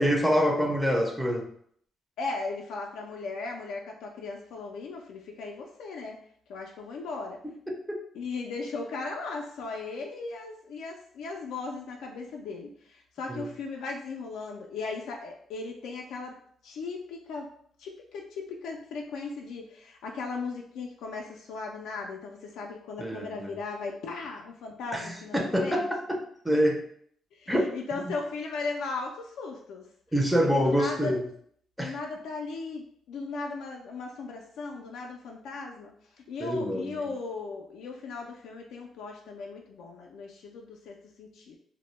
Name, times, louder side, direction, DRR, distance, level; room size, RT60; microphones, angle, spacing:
voice 1, 0.0-1.5 7.7-8.0 13.3-13.5 23.0-23.5 24.9-26.2 26.4-26.8 27.5-27.6 30.1-31.2 31.8-31.9 36.4-37.1, equal, ahead, 1 dB, 0.4 m, -26 dB
voice 2, 2.2-6.2 6.5-7.4 8.1-16.4 16.6-17.5 17.8-25.9 27.3-29.9 30.4-31.2 31.8-35.9 36.3-41.6, left 4 dB, 80° left, 0 dB, 0.3 m, -37 dB
2.1 x 2.0 x 3.0 m, 0.63 s
cardioid pair, 90°, 0 cm